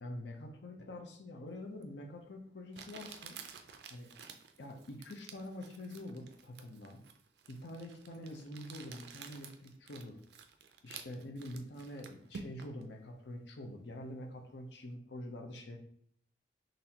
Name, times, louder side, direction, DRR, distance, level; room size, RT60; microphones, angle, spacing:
voice 1, 0.0-3.4 3.9-4.1 4.6-7.0 7.5-10.2 10.8-15.8, left 1 dB, 80° left, 3 dB, 0.7 m, -46 dB
Crumpling crinkling, 1.8-1.9 2.7-12.8, right 6 dB, 70° right, 0.4 m, -51 dB
4.0 x 3.2 x 2.8 m, 0.63 s
head